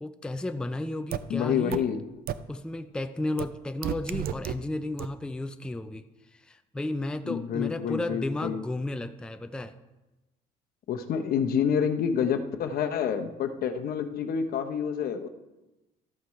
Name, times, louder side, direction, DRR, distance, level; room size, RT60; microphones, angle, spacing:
voice 1, 0.0-1.8 2.5-6.0 6.3-9.7, left 2 dB, 5° left, 8 dB, 0.4 m, -33 dB
sound 1, 1.1-1.2 1.7-1.8 2.3-2.4 3.4-3.5 3.8-4.5 5.0-5.1, right 11 dB, 60° right, 0.5 m, -30 dB
voice 2, 1.3-2.0 7.2-8.6 10.9-15.3, left 7 dB, 60° left, 7 dB, 0.9 m, -28 dB
13.0 x 8.1 x 3.2 m, 1.0 s
cardioid pair, 110°, 17 cm